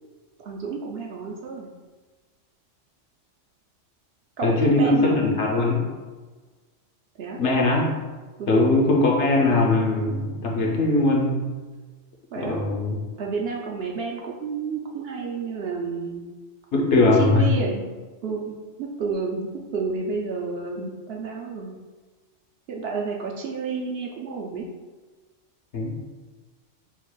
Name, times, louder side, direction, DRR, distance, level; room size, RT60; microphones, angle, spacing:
voice 1, 0.4-1.7 4.4-5.3 7.2-7.4 8.4-8.6 12.3-12.6 13.2-16.2 17.1-17.8 18.2-21.7 22.7-24.7, right 4 dB, 60° right, -1 dB, 0.7 m, -30 dB
voice 2, 4.4-5.9 7.4-7.9 8.5-11.6 12.3-13.0 16.7-17.4 25.7-26.0, left 2 dB, 70° left, -1 dB, 1.0 m, -20 dB
3.8 x 2.4 x 4.5 m, 1.3 s
omnidirectional pair, 1.3 m